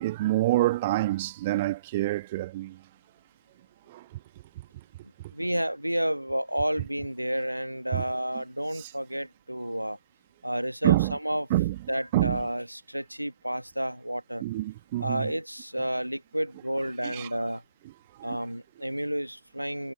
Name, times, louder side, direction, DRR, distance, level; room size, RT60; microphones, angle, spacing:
voice 1, 0.0-2.8 3.9-4.0 7.9-8.0 10.8-11.1 11.5-11.7 12.1-12.4 14.4-15.3 17.1-17.3 18.2-18.4, right 16 dB, 55° right, 1.5 m, -26 dB
voice 2, 5.0-10.0 10.4-11.5 11.9-14.4 15.0-17.6 18.2-19.9, equal, 90° right, 1.5 m, -31 dB
figure-of-eight pair, 90°, 0 cm